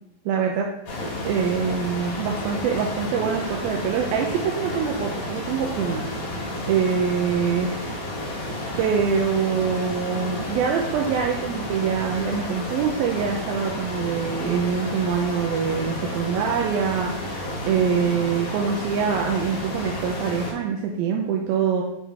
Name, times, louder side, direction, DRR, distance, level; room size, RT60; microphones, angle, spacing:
voice 1, 0.3-6.0 6.7-7.9 8.5-21.8, right 7 dB, 90° right, 0 dB, 2.5 m, -25 dB
sound 1, 0.9-20.5, left 1 dB, 60° left, 2.8 m, -31 dB
6.4 x 5.7 x 3.5 m, 0.90 s
omnidirectional pair, 4.2 m